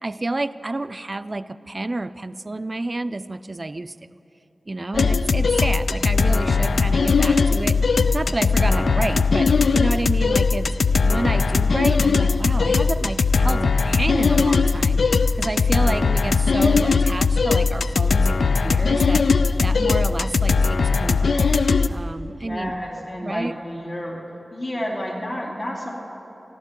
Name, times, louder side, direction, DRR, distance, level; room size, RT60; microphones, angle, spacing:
voice 1, 0.0-3.9 4.7-7.8 8.1-10.7 11.1-19.3 19.6-21.4 21.9-22.8 23.2-23.6, right 2 dB, 40° right, 13 dB, 0.4 m, -29 dB
sound 1, 4.9-21.9, left 4 dB, 80° left, 0.4 m, -19 dB
voice 2, 22.3-24.2 24.5-25.9, equal, 55° left, -4 dB, 3.0 m, -30 dB
27.0 x 11.5 x 3.7 m, 3.0 s
cardioid pair, 40°, 0 cm